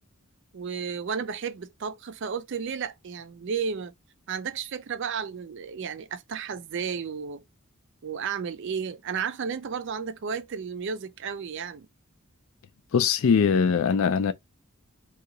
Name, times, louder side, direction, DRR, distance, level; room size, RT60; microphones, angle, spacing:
voice 1, 0.5-3.9 4.3-7.4 8.0-11.9, right 6 dB, 55° right, 0.4 m, -33 dB
voice 2, 12.9-14.3, left 6 dB, 65° left, 0.4 m, -21 dB
2.8 x 2.3 x 3.7 m
head